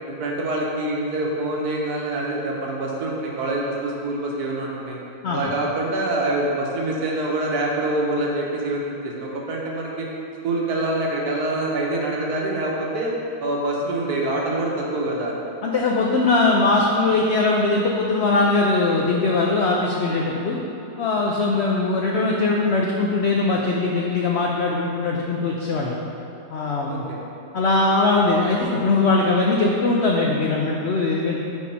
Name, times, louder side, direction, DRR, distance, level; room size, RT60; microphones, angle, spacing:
voice 1, 0.2-5.0 5.3-10.1 10.4-13.1 13.4-15.3 26.9-27.2, right 2 dB, 70° right, -3 dB, 1.5 m, -25 dB
voice 2, 15.6-20.6 21.0-26.0 26.5-27.0 27.5-31.4, left 3 dB, 70° left, -1 dB, 0.6 m, -21 dB
5.4 x 4.7 x 5.3 m, 2.8 s
omnidirectional pair, 1.8 m